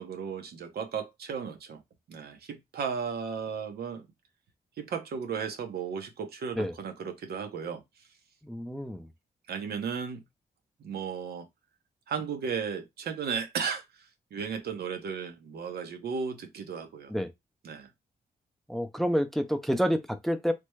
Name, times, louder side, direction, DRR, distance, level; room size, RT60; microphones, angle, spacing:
voice 1, 0.0-1.8 2.1-4.0 4.8-7.8 9.5-10.2 10.8-11.5 12.1-17.1 17.6-17.9, right 6 dB, 85° right, 0.7 m, -35 dB
voice 2, 8.4-9.1 17.1-17.3 18.7-20.5, equal, ahead, 0.4 m, -28 dB
3.3 x 2.0 x 3.1 m
cardioid pair, 95°, 16 cm